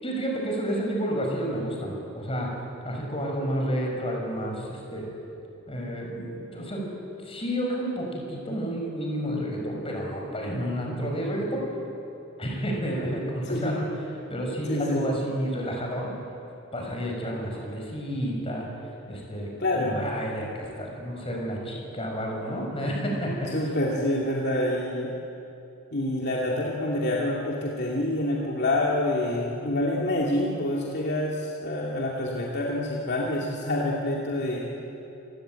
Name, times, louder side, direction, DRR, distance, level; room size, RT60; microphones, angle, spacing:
voice 1, 0.0-2.5 2.8-5.1 5.7-6.9 7.2-11.6 12.4-13.9 14.3-16.1 16.7-18.7 19.1-19.5 19.7-23.5, equal, 25° left, 0 dB, 5.6 m, -30 dB
voice 2, 13.5-13.8 14.7-15.1 19.6-20.2 23.5-25.1 25.9-34.7, left 1 dB, 55° left, -3 dB, 2.6 m, -27 dB
27.5 x 17.5 x 9.1 m, 2.8 s
head